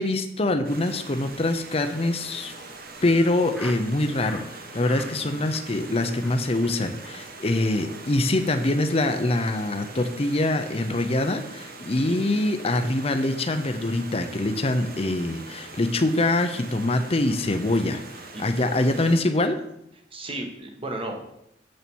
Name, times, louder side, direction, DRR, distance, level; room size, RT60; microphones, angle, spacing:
voice 1, 0.0-2.5 3.0-18.0 18.4-19.6, left 2 dB, 30° left, 7 dB, 0.7 m, -24 dB
Stream, 0.6-19.2, right 3 dB, 50° right, 1.2 m, -42 dB
Laughter, 2.1-3.9 4.2-4.5 4.8-5.2 5.5-5.9 6.2-6.3 6.6-6.7 7.0-7.1 7.3-7.5 7.8-8.1, equal, ahead, 1.1 m, -44 dB
voice 2, 5.0-5.4 11.9-12.2 18.3-18.4 20.1-21.3, right 1 dB, 30° right, 3 dB, 1.4 m, -35 dB
7.7 x 6.9 x 6.1 m, 0.80 s
head